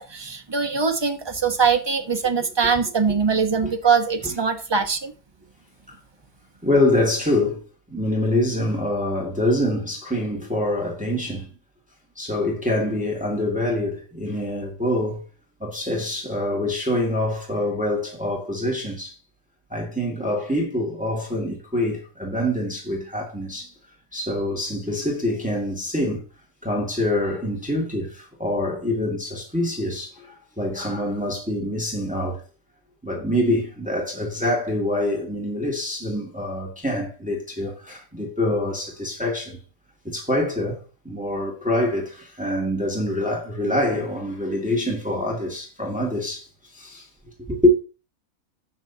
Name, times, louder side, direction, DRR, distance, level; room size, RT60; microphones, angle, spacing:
voice 1, 0.0-5.1, right 5 dB, 20° right, 0.9 m, -22 dB
voice 2, 6.6-11.5 12.2-15.2 15.6-19.2 19.7-23.7 24.1-26.2 26.6-32.4 33.0-39.6 40.0-47.1 47.5-47.8, left 1 dB, 5° right, 2.2 m, -25 dB
16.0 x 6.3 x 2.8 m
omnidirectional pair, 1.5 m